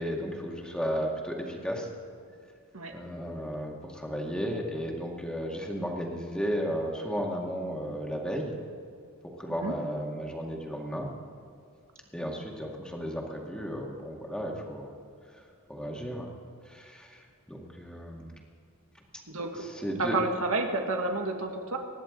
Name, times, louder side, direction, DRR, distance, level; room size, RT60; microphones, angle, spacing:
voice 1, 0.0-1.9 2.9-8.6 9.4-11.1 12.1-14.9 15.7-16.3 16.7-18.4 19.6-20.1, equal, 5° left, -1 dB, 2.1 m, -34 dB
voice 2, 20.0-21.8, right 3 dB, 90° right, 3 dB, 2.0 m, -30 dB
25.0 x 11.0 x 3.9 m, 2.4 s
head